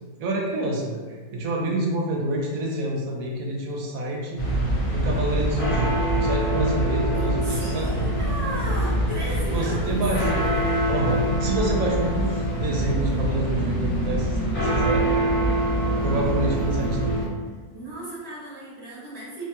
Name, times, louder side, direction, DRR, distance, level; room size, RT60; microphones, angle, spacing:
voice 1, 0.2-4.4 4.9-8.1 9.5-10.5 10.9-15.2 16.0-17.2, right 1 dB, 85° right, -1 dB, 1.1 m, -28 dB
sound 1, 4.4-17.3, right 1 dB, 35° left, 0.6 m, -24 dB
voice 2, 7.1-10.0 17.7-19.4, right 1 dB, 55° right, -7 dB, 1.0 m, -35 dB
3.3 x 2.2 x 2.8 m, 1.4 s
omnidirectional pair, 1.4 m